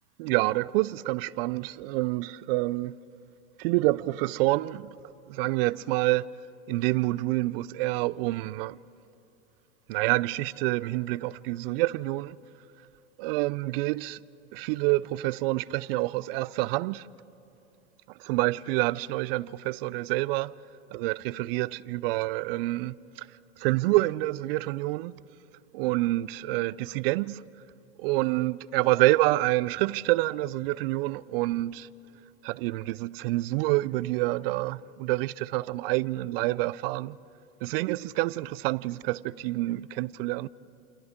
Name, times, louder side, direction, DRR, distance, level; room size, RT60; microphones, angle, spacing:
voice 1, 0.2-3.0 3.6-5.0 5.3-6.4 6.7-8.8 9.9-12.4 13.2-14.2 14.5-17.1 18.2-20.5 20.9-23.3 23.6-25.2 25.7-27.4 28.0-31.9 32.4-37.2 37.6-40.5, right 19 dB, 55° right, 0.5 m, -27 dB
29.0 x 28.0 x 3.7 m
hypercardioid pair, 100°, 36 cm